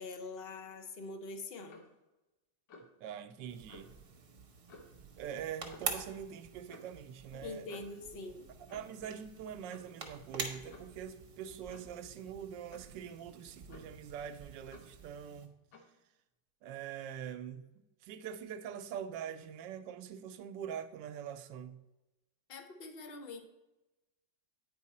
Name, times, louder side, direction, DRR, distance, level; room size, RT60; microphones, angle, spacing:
voice 1, 0.0-1.8 7.3-8.5 22.5-23.4, left 3 dB, 55° left, 0.7 m, -44 dB
Clock, 1.7-2.0 2.7-3.0 3.7-3.9 4.7-5.0 5.7-6.0 6.7-6.9 7.7-8.0 8.7-9.0 9.7-10.0 10.7-11.0 11.7-12.0 12.7-13.0 13.7-14.1 14.7-15.0 15.7-15.9, left 2 dB, 75° left, 1.6 m, -56 dB
voice 2, 3.0-4.0 5.2-7.8 8.7-15.6 16.6-17.6 18.0-21.8, right 8 dB, 80° right, 1.3 m, -44 dB
sound 1, 3.5-15.5, right 5 dB, 50° right, 1.2 m, -47 dB
8.8 x 4.8 x 4.1 m
omnidirectional pair, 1.9 m